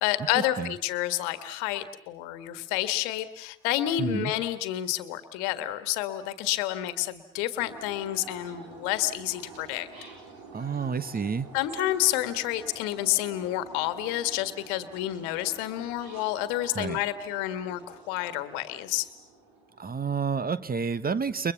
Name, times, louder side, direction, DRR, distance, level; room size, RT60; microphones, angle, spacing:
voice 1, 0.0-9.9 11.5-19.1, left 14 dB, 65° left, 12 dB, 1.6 m, -29 dB
voice 2, 4.0-4.3 10.5-11.5 16.7-17.0 19.8-21.5, right 5 dB, 30° right, 17 dB, 1.2 m, -29 dB
sound 1, 7.6-20.4, right 4 dB, 75° right, 4.8 m, -48 dB
29.5 x 23.0 x 7.1 m, 0.80 s
figure-of-eight pair, 40°, 31 cm